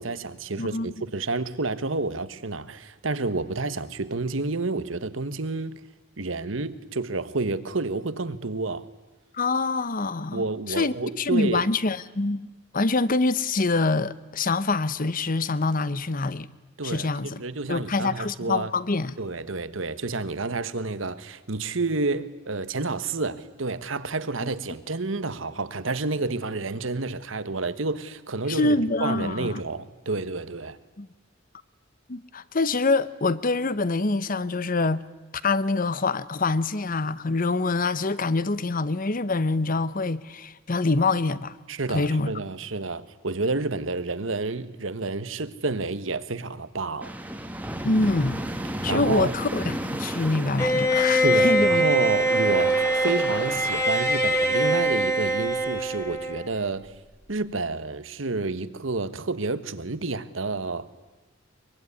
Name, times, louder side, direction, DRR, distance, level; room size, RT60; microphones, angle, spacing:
voice 1, 0.0-5.8 6.2-8.9 10.3-11.7 16.8-18.7 19.2-30.8 41.7-47.1 48.9-49.3 51.2-56.9 57.3-60.9, right 3 dB, 75° right, 1.3 m, -29 dB
voice 2, 0.6-0.9 9.3-12.5 12.7-16.5 16.8-17.4 17.7-19.1 28.5-29.6 31.0-31.1 32.1-35.0 35.4-41.6 41.9-42.3 47.8-48.4 48.8-51.8, left 3 dB, 45° left, 0.9 m, -25 dB
sound 1, 47.0-53.8, right 1 dB, 10° right, 1.6 m, -34 dB
Bowed string instrument, 50.6-56.6, right 1 dB, 15° left, 3.0 m, -23 dB
23.0 x 23.0 x 9.8 m
head